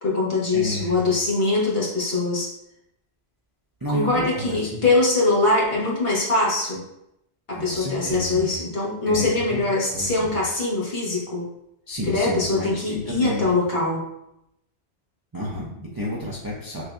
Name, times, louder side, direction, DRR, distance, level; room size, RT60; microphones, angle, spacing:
voice 1, 0.0-2.5 3.9-6.8 7.5-11.5 12.1-14.1, left 2 dB, 60° left, -5 dB, 1.4 m, -22 dB
voice 2, 0.5-1.0 3.8-4.9 7.6-8.5 9.0-9.6 9.9-10.3 11.9-13.5 15.3-16.8, equal, 25° right, -4 dB, 0.5 m, -31 dB
6.2 x 2.7 x 2.3 m, 0.82 s
omnidirectional pair, 1.1 m